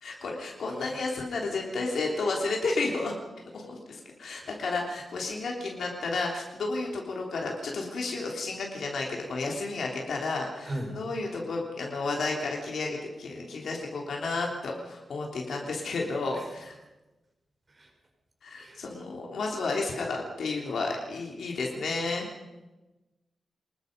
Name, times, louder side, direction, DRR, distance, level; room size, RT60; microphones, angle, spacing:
voice 1, 0.0-3.1 3.5-16.8 18.4-22.3, left 3 dB, 65° left, 0 dB, 3.4 m, -32 dB
voice 2, 10.6-11.0 16.3-16.5 17.7-17.9 18.6-18.8, right 1 dB, 25° right, 3 dB, 5.2 m, -39 dB
25.5 x 20.5 x 5.4 m, 1.1 s
wide cardioid pair, 170°, 0 cm